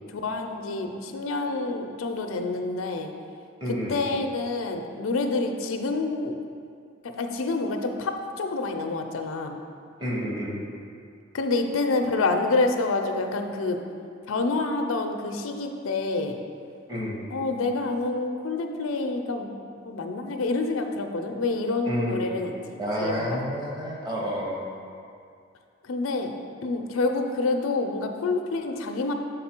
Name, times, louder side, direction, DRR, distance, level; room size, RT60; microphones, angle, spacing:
voice 1, 0.1-3.1 3.9-6.4 7.0-9.6 11.3-13.8 14.3-16.4 17.3-19.6 19.9-22.5 23.0-23.4 25.8-26.3 26.6-29.1, left 3 dB, 90° left, 5 dB, 0.5 m, -27 dB
voice 2, 3.6-4.0 10.0-10.6 16.9-17.2 21.9-22.3 22.8-24.7, equal, 20° right, -3 dB, 0.9 m, -30 dB
6.6 x 4.0 x 4.4 m, 2.3 s
head